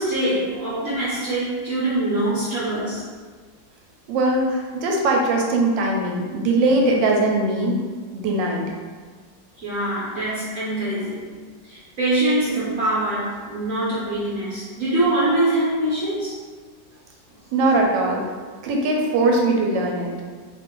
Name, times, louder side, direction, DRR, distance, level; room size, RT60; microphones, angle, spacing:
voice 1, 0.0-3.0 9.6-11.3 11.6-16.4, right 1 dB, 55° right, -10 dB, 1.0 m, -24 dB
voice 2, 4.1-7.8 8.1-8.6 17.5-18.2 18.6-20.1, right 2 dB, 90° right, 0 dB, 1.3 m, -20 dB
2.9 x 2.5 x 3.7 m, 1.5 s
omnidirectional pair, 1.9 m